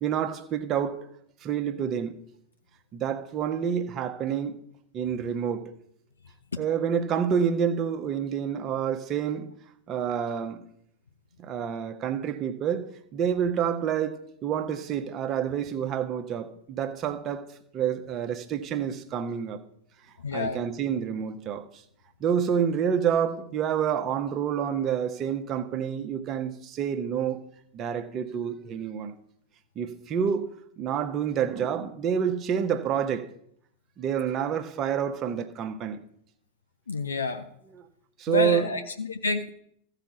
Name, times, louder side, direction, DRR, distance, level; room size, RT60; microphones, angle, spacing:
voice 1, 0.0-1.0 1.4-2.1 2.9-4.6 4.9-5.7 6.6-9.5 9.9-10.6 11.4-17.5 17.7-19.6 20.3-21.6 22.2-27.5 27.7-29.1 29.8-33.3 34.0-36.0 38.2-38.7, right 8 dB, 30° right, 0.9 m, -28 dB
voice 2, 20.2-20.6 36.9-37.5 38.3-39.5, left 3 dB, 75° left, 0.6 m, -29 dB
15.0 x 5.0 x 6.1 m
figure-of-eight pair, 90°, 0 cm